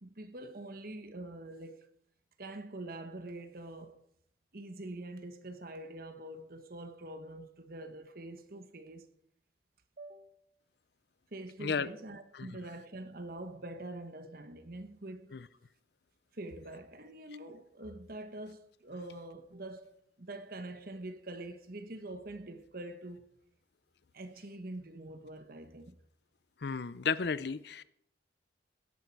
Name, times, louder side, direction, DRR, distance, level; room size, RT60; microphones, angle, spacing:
voice 1, 0.0-1.9 2.4-4.0 4.5-9.1 10.0-10.4 11.3-15.4 16.3-23.2 24.1-26.0, right 2 dB, 50° right, 1.2 m, -45 dB
voice 2, 26.6-27.8, left 5 dB, 60° left, 0.5 m, -33 dB
17.0 x 11.0 x 4.7 m
head